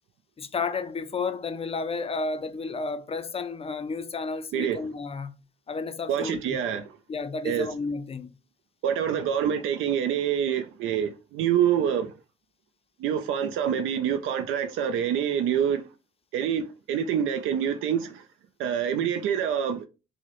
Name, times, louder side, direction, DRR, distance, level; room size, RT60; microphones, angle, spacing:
voice 1, 0.4-5.3 5.7-6.6 7.1-8.4, left 4 dB, 30° left, 0.4 m, -32 dB
voice 2, 6.1-6.9 7.4-7.7 8.8-12.1 13.0-15.8 16.3-18.3 18.6-19.9, right 9 dB, 85° right, 0.4 m, -26 dB
4.6 x 2.1 x 3.0 m
cardioid pair, 90°, 20 cm